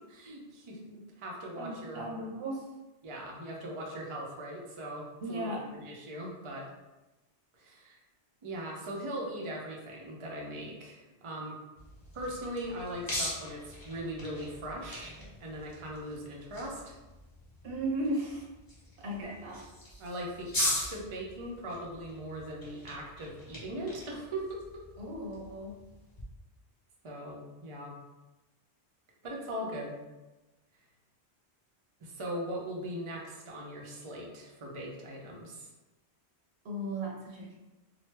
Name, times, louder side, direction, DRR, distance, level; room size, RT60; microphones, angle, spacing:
voice 1, 0.1-2.1 3.0-6.6 7.6-8.0 8.4-11.6 12.1-15.1 15.4-16.9 20.0-24.8 27.0-28.0 29.2-30.0 32.0-35.7, right 1 dB, 40° right, -2 dB, 0.5 m, -40 dB
voice 2, 1.6-2.6 5.2-5.7 17.6-18.4 19.0-19.6 25.0-25.8 36.6-37.5, right 1 dB, 85° right, -3 dB, 1.1 m, -36 dB
sound 1, 11.8-26.2, left 1 dB, 25° left, 0.6 m, -41 dB
3.0 x 2.0 x 3.2 m, 1.1 s
omnidirectional pair, 1.1 m